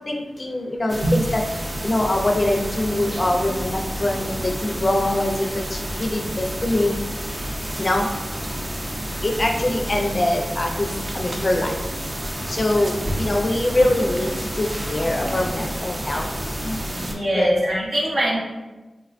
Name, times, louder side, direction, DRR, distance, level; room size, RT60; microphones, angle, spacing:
voice 1, 0.1-1.4 1.8-7.0 7.8-8.1 9.2-10.9 11.1-11.7 12.5-16.3 16.6-16.8 17.3-17.5, left 1 dB, 40° left, 1 dB, 0.4 m, -23 dB
sound 1, 0.9-17.2, equal, 30° right, 0.4 m, -30 dB
voice 2, 17.0-18.4, right 1 dB, 70° right, -5 dB, 0.8 m, -22 dB
4.0 x 2.2 x 2.4 m, 1.1 s
wide cardioid pair, 70°, 0 cm